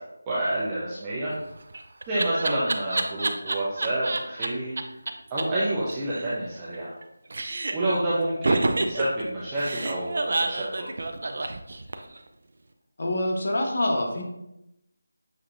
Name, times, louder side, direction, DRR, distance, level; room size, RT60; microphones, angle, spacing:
voice 1, 0.0-1.3 2.1-4.7 5.3-6.9 7.7-10.9, right 1 dB, 15° right, -10 dB, 0.7 m, -28 dB
Laughter, 1.4-4.5 4.8-4.9 5.1-5.2 5.4-5.5 5.7-7.0 7.3-7.9 8.4-12.2, right 2 dB, 55° right, 0.4 m, -28 dB
voice 2, 13.0-14.2, left 1 dB, 50° left, 1 dB, 0.8 m, -25 dB
6.8 x 2.8 x 2.5 m, 0.87 s
figure-of-eight pair, 170°, 0 cm